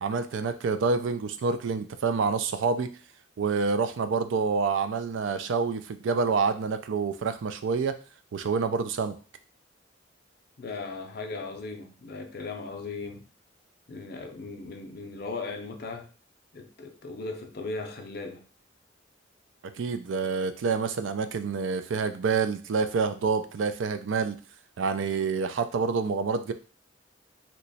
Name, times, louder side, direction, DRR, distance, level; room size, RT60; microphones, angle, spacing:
voice 1, 0.0-2.9 3.4-7.9 8.3-9.1 19.8-24.4 24.8-26.5, right 5 dB, 75° right, 0.4 m, -27 dB
voice 2, 10.6-13.2 13.9-16.1 16.5-18.4, left 3 dB, 55° left, 0.5 m, -37 dB
2.9 x 2.2 x 4.0 m
head